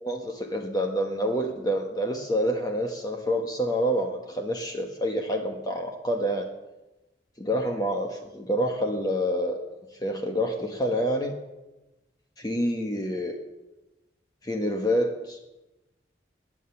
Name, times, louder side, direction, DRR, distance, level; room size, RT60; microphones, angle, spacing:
voice 1, 0.0-6.5 7.4-9.6 10.0-11.3 12.4-13.4 14.4-15.4, equal, 20° left, 3 dB, 1.2 m, -27 dB
18.5 x 9.8 x 7.1 m, 1.0 s
head